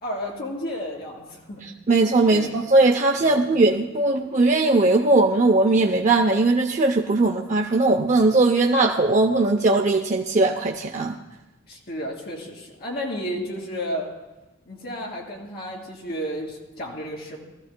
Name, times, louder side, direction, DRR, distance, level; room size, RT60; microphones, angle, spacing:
voice 1, 0.0-1.6 2.3-2.5 3.2-3.4 11.7-14.1 14.7-17.4, equal, 55° left, -2 dB, 2.8 m, -32 dB
voice 2, 1.6-11.2, right 2 dB, 40° right, 2 dB, 0.6 m, -19 dB
19.5 x 14.5 x 2.2 m, 1.1 s
head